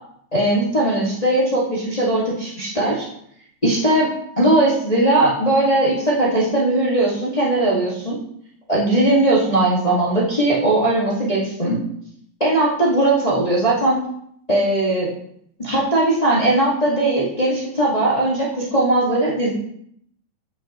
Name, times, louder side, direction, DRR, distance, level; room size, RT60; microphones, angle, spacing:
voice 1, 0.3-3.0 3.6-4.1 4.4-8.2 8.7-11.8 12.4-14.0 14.5-15.1 15.6-19.5, right 1 dB, 55° left, -6 dB, 0.4 m, -19 dB
14.5 x 6.0 x 3.0 m, 0.70 s
omnidirectional pair, 4.3 m